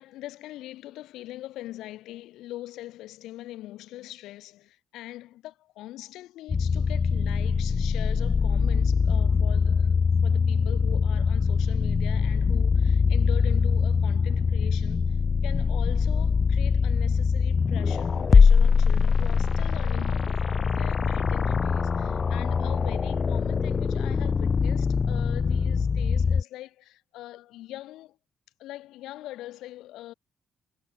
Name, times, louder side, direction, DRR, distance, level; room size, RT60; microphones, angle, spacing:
voice 1, 0.0-10.0 10.2-28.2 28.6-30.1, left 15 dB, 90° left, 3.8 m, -42 dB
sound 1, 6.5-26.4, left 5 dB, 40° left, 0.4 m, -23 dB
cardioid pair, 90°, 0 cm